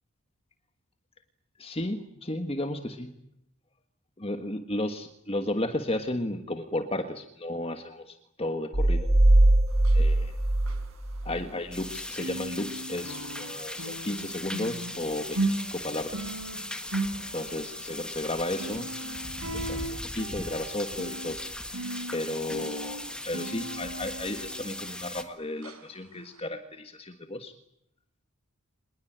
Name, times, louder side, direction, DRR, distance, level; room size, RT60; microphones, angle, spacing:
voice 1, 1.6-3.1 4.2-9.1 9.9-10.3 11.2-16.3 17.3-21.4 22.1-27.5, left 1 dB, 25° left, 7 dB, 1.5 m, -34 dB
sound 1, 8.7-11.5, right 1 dB, 30° right, 0.9 m, -21 dB
sound 2, 9.7-11.9 12.1-25.3 25.6-25.8 26.3-26.4, right 2 dB, 80° right, 5.0 m, -37 dB
sound 3, 11.7-25.2, left 1 dB, 5° left, 1.7 m, -38 dB
26.5 x 20.5 x 9.0 m, 0.77 s
head